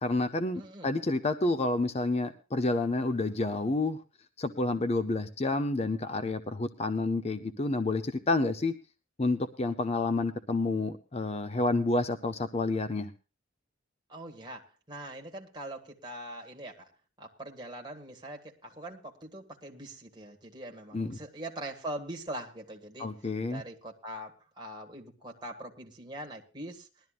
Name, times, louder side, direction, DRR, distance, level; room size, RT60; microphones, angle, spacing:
voice 1, 0.0-4.0 4.4-8.7 9.2-13.1 20.9-21.2 23.0-23.6, left 2 dB, 30° left, 11 dB, 0.6 m, -29 dB
voice 2, 0.5-0.9 14.1-16.9 17.2-23.1 23.5-26.9, right 1 dB, 20° right, 0 dB, 1.7 m, -42 dB
20.5 x 12.5 x 2.4 m, 0.31 s
head